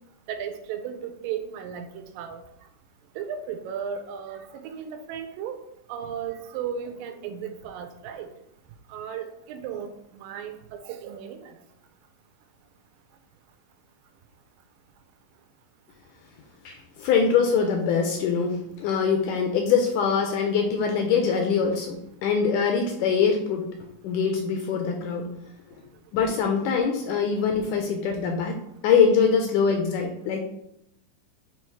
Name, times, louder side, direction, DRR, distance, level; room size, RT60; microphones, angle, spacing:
voice 1, 0.3-2.4 3.2-5.6 5.9-8.3 8.9-11.6, right 8 dB, 85° right, 6 dB, 2.3 m, -35 dB
voice 2, 16.7-23.7 24.0-25.3 26.1-30.4, left 6 dB, 80° left, 3 dB, 1.9 m, -23 dB
6.8 x 3.1 x 4.5 m, 0.76 s
omnidirectional pair, 4.0 m